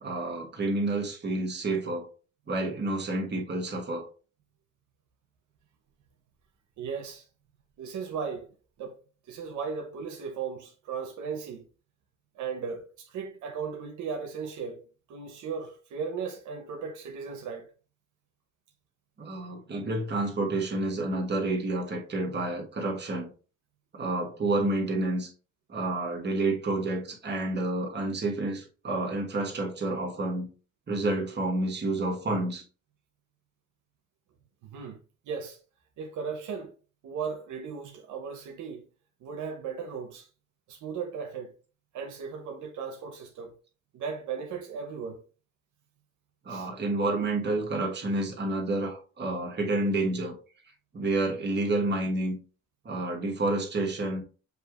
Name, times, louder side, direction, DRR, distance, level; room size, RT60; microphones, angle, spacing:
voice 1, 0.0-2.1 2.5-4.1 19.2-23.3 23.9-25.3 25.7-30.5 30.9-32.6 46.4-50.4 50.9-52.4 52.8-54.2, right 2 dB, 35° right, 1.3 m, -29 dB
voice 2, 6.8-7.3 7.8-8.5 8.8-9.0 9.3-11.7 12.3-14.8 15.1-17.7 34.6-35.0 35.2-35.6 36.0-36.7 37.0-38.9 39.2-40.3 40.7-41.5 41.9-43.5 43.9-45.2 46.5-46.7, right 6 dB, 80° right, 0.8 m, -36 dB
6.6 x 2.8 x 2.4 m
cardioid pair, 90°, 30 cm